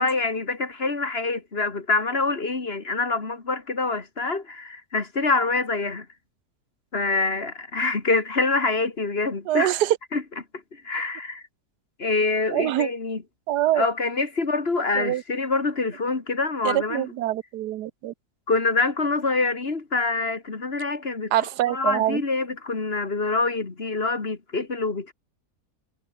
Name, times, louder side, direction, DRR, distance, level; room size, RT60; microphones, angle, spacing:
voice 1, 0.0-6.1 6.9-9.7 10.1-10.2 10.7-11.4 12.0-13.2 13.8-17.1 18.5-21.3 21.7-25.1, left 3 dB, 40° left, 2.3 m, -25 dB
voice 2, 9.5-10.0 12.5-12.9 13.5-13.8 15.0-15.2 16.6-18.1 21.3-22.2, right 13 dB, 90° right, 1.3 m, -24 dB
omnidirectional pair, 1.7 m